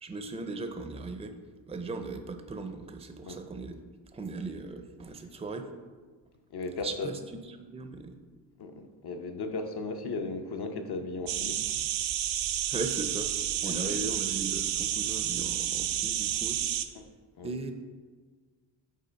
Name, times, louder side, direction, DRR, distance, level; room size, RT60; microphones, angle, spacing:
voice 1, 0.0-1.3 1.7-3.8 4.1-5.7 6.8-7.2 7.6-8.2 12.7-13.3 13.6-16.6 17.4-17.7, right 3 dB, 15° right, 7 dB, 0.4 m, -38 dB
voice 2, 6.5-7.2 8.6-11.6 13.6-14.0 16.9-17.1 17.4-17.5, left 3 dB, 60° left, 6 dB, 0.8 m, -36 dB
sound 1, 11.3-16.9, right 11 dB, 80° right, 0.5 m, -30 dB
5.5 x 3.8 x 5.2 m, 1.5 s
cardioid pair, 85°, 45 cm